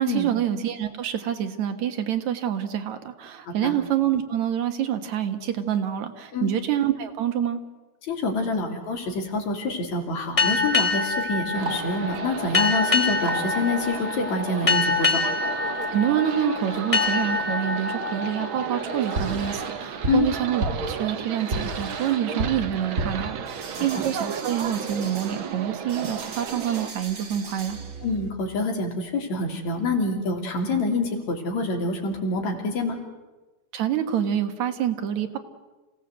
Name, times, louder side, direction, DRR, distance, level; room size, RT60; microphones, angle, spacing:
voice 1, 0.0-7.6 15.9-27.8 33.7-35.4, right 10 dB, 75° right, 7 dB, 2.8 m, -27 dB
voice 2, 3.5-3.8 6.3-6.5 8.0-15.2 20.1-20.3 24.0-24.1 28.0-33.0, left 2 dB, 70° left, 3 dB, 4.1 m, -26 dB
sound 1, 10.4-19.7, left 4 dB, 25° left, 0.8 m, -26 dB
sound 2, 11.1-14.1 14.3-14.4 14.7-14.8 15.6-16.4 16.7-17.4 17.7-28.3, right 2 dB, 35° right, 1.6 m, -35 dB
sound 3, 11.5-26.9, right 7 dB, 55° right, 1.6 m, -34 dB
27.5 x 17.0 x 7.9 m, 1.2 s
omnidirectional pair, 3.3 m